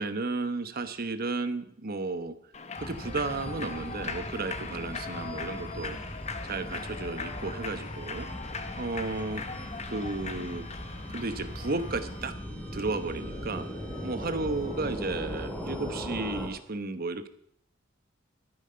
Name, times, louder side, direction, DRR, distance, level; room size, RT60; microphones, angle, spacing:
voice 1, 0.0-2.3 2.8-6.0 6.4-8.3 8.8-9.4 9.9-10.7 11.1-12.3 12.7-13.7 14.0-17.3, right 3 dB, 50° right, 10 dB, 1.1 m, -33 dB
Human voice / Clapping / Cheering, 2.5-12.2, left 4 dB, 35° left, 1.0 m, -40 dB
sound 1, 2.8-16.5, equal, 10° left, 3.0 m, -39 dB
13.0 x 9.2 x 5.6 m, 0.69 s
head